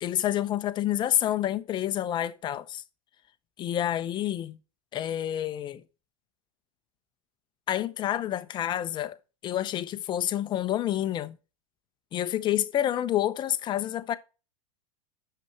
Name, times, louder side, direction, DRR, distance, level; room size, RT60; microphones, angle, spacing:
voice 1, 0.0-2.8 3.6-4.6 4.9-5.8 7.7-9.2 9.4-11.3 12.1-14.1, left 12 dB, 25° left, 0.7 m, -28 dB
6.9 x 5.8 x 4.5 m
supercardioid pair, 140°, 18 cm